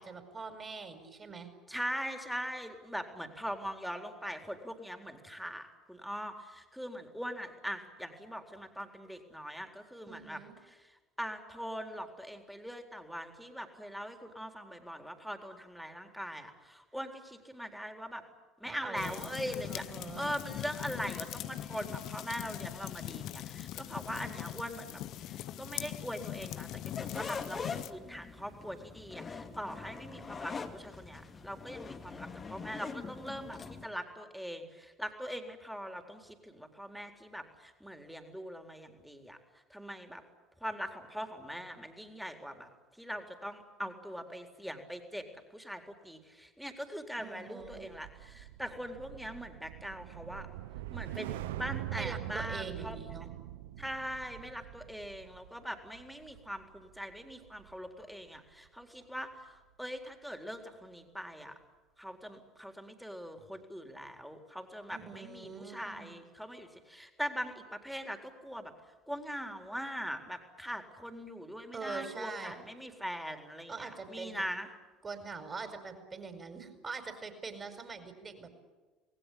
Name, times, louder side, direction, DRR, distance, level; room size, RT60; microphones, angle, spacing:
voice 1, 0.0-1.5 10.1-10.6 18.6-19.3 19.7-20.3 47.2-47.9 52.0-53.3 64.9-66.1 71.7-72.5 73.7-74.5 75.0-78.5, right 4 dB, 25° right, 8 dB, 5.0 m, -43 dB
voice 2, 1.7-10.4 10.7-18.2 18.6-19.9 20.2-39.4 39.7-40.2 40.6-42.7 43.0-45.3 45.5-50.5 50.9-53.0 53.8-61.5 62.0-68.7 69.1-74.7, equal, ahead, 5 dB, 4.0 m, -41 dB
sound 1, 19.0-27.9, left 13 dB, 50° left, 1.1 m, -41 dB
sound 2, 27.0-33.9, left 5 dB, 30° left, 2.5 m, -43 dB
sound 3, 47.6-58.0 58.3-58.7, right 13 dB, 65° right, 0.8 m, -44 dB
28.5 x 20.0 x 8.7 m, 1.3 s
figure-of-eight pair, 60°, 0 cm